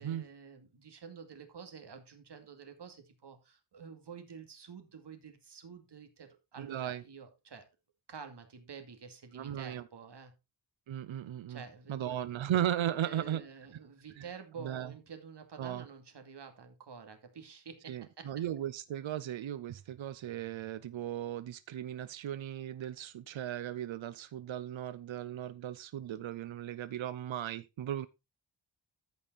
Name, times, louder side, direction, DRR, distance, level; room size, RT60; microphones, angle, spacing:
voice 1, 0.0-7.6 8.1-10.3 11.5-12.2 13.0-18.3, right 6 dB, 60° right, 2.4 m, -49 dB
voice 2, 6.6-7.0 9.3-9.8 10.9-11.6 11.9-13.4 14.2-14.3 14.6-14.9 15.6-15.8 17.9-28.1, right 11 dB, 90° right, 0.7 m, -36 dB
14.0 x 5.5 x 4.1 m
wide cardioid pair, 120°, 45 cm